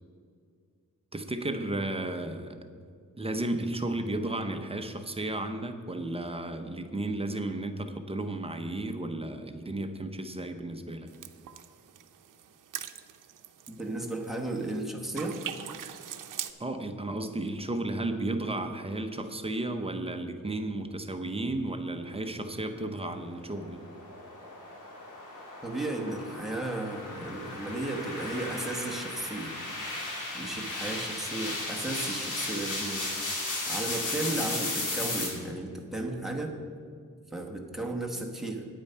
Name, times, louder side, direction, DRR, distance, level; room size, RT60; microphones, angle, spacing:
voice 1, 1.1-2.6 3.2-11.1 16.6-23.8, right 2 dB, 20° right, 6 dB, 0.7 m, -33 dB
sound 1, 11.1-14.8 15.2-16.5, right 10 dB, 75° right, 0.6 m, -42 dB
voice 2, 13.7-15.4 25.6-29.5 30.3-33.2 33.7-36.6 37.3-38.7, right 2 dB, ahead, 1 dB, 1.1 m, -34 dB
sound 2, 23.2-35.3, left 2 dB, 75° left, 2.6 m, -35 dB
9.2 x 8.7 x 5.6 m, 2.2 s
wide cardioid pair, 155°, 32 cm